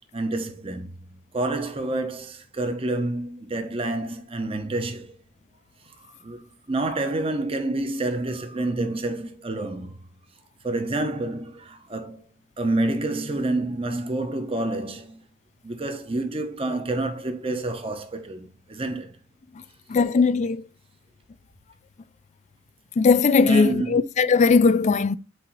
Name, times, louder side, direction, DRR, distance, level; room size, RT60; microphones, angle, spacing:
voice 1, 0.1-5.2 6.2-10.1 10.6-12.2 12.6-15.2 15.6-19.2 23.4-24.3, right 2 dB, 30° right, 0.9 m, -28 dB
voice 2, 19.9-20.6 23.0-25.1, left 4 dB, 40° left, 0.3 m, -19 dB
7.7 x 2.8 x 4.6 m
head